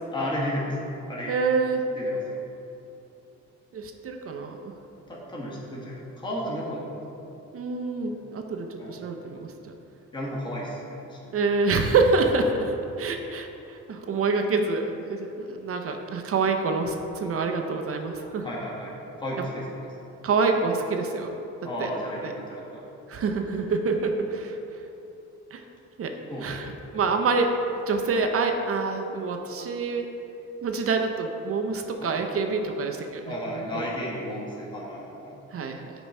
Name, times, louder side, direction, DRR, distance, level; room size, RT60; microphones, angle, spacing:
voice 1, 0.1-0.8 1.1-1.3 2.0-2.2 5.1-7.0 8.1-8.2 8.8-9.0 10.1-11.3 18.4-18.9 19.2-19.9 21.6-22.9 26.3-26.5 32.0-32.2 33.3-35.4, equal, 15° left, -5 dB, 1.2 m, -33 dB
voice 2, 1.3-1.8 3.7-4.7 7.5-9.5 11.3-18.5 20.2-21.3 21.8-21.9 22.2-22.3 23.1-24.6 25.5-25.6 26.0-26.1 26.4-30.1 30.6-33.8 35.5-35.9, right 4 dB, 50° right, 4 dB, 0.6 m, -26 dB
6.7 x 3.0 x 5.3 m, 2.9 s
cardioid pair, 90°, 30 cm